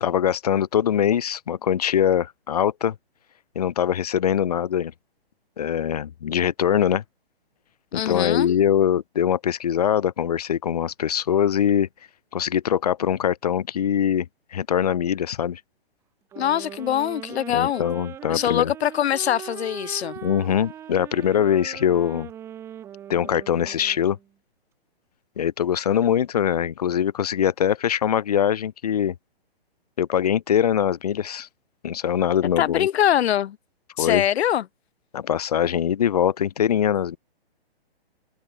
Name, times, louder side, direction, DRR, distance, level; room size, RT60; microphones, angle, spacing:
voice 1, 0.0-2.9 3.5-4.9 5.6-7.0 7.9-11.9 12.3-14.3 14.5-15.6 17.5-18.7 20.2-22.3 23.1-24.2 25.4-29.1 30.0-31.5 31.8-32.9 34.0-34.2 35.1-37.2, left 9 dB, 40° left, 0.8 m, -22 dB
voice 2, 7.9-8.5 16.4-17.8 18.3-20.2 32.6-33.6 34.0-34.6, left 11 dB, 85° left, 0.6 m, -23 dB
sound 1, 16.3-24.3, right 10 dB, 10° right, 2.2 m, -40 dB
hypercardioid pair, 175°, 31 cm